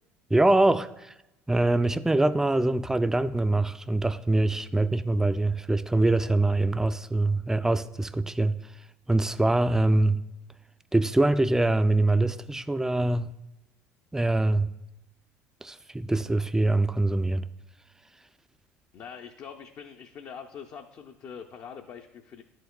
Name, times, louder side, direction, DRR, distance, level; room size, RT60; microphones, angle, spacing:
voice 1, 0.3-1.1 1.5-8.6 9.1-10.2 10.9-13.4 14.1-14.7 15.6-17.4, right 2 dB, 5° right, 0.3 m, -24 dB
voice 2, 18.9-22.4, left 7 dB, 45° left, 0.5 m, -43 dB
11.0 x 4.6 x 2.2 m
hypercardioid pair, 65°, 7 cm